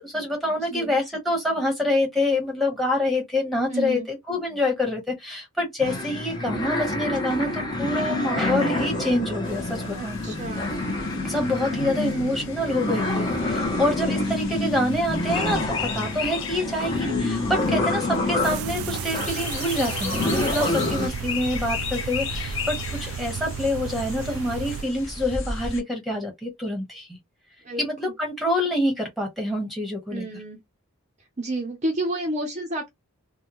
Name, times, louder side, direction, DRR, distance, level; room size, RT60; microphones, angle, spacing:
voice 1, 0.0-10.3 11.2-27.2 27.8-30.3, left 1 dB, ahead, 1.2 m, -26 dB
voice 2, 0.5-1.0 3.7-4.1 9.9-10.8 18.1-18.3 27.6-28.1 30.1-30.6 31.2-32.9, right 1 dB, 30° right, 0.6 m, -31 dB
sound 1, 5.8-21.1, left 2 dB, 20° left, 0.8 m, -27 dB
sound 2, 9.4-25.8, left 5 dB, 55° left, 0.9 m, -36 dB
sound 3, 18.4-24.8, right 7 dB, 75° right, 0.3 m, -33 dB
3.4 x 2.2 x 3.0 m
head